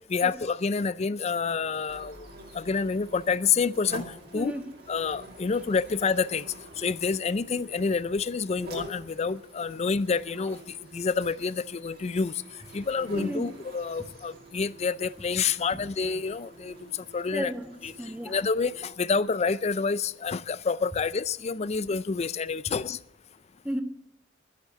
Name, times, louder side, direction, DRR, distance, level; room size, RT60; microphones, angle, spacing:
voice 1, 0.1-2.2 2.6-4.0 4.3-4.5 4.9-6.4 6.8-10.6 10.9-12.3 12.7-16.7 17.1-17.5 17.8-17.9 18.3-18.7 19.0-23.0, left 5 dB, 35° left, 18 dB, 0.4 m, -28 dB
sound 1, 1.9-18.9, right 1 dB, 55° right, 2.4 m, -46 dB
voice 2, 17.3-18.4 23.6-23.8, equal, 5° right, 6 dB, 1.3 m, -34 dB
11.5 x 10.5 x 8.2 m, 0.79 s
head